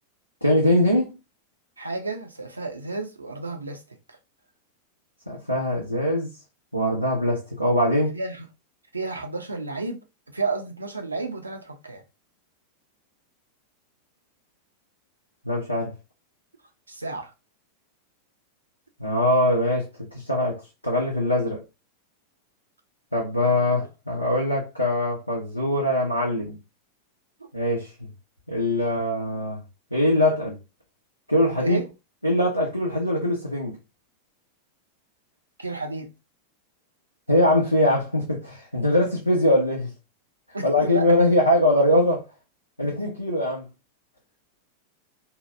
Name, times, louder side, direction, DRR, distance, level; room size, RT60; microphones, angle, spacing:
voice 1, 0.4-1.1 5.3-6.3 6.7-8.1 15.4-15.9 19.0-19.9 20.3-20.6 20.8-21.6 23.1-26.5 27.5-28.1 28.5-29.6 29.9-30.6 31.3-31.8 32.2-33.8 37.3-39.9 40.6-42.2 42.8-43.7, left 1 dB, 90° left, 0.7 m, -22 dB
voice 2, 1.8-3.8 4.1-4.2 8.1-8.4 8.9-12.0 16.9-17.3 27.4-27.5 31.6-31.9 35.6-36.1 40.5-41.1 42.8-42.9, right 3 dB, 80° right, 0.5 m, -32 dB
2.8 x 2.3 x 3.2 m
figure-of-eight pair, 90°, 0 cm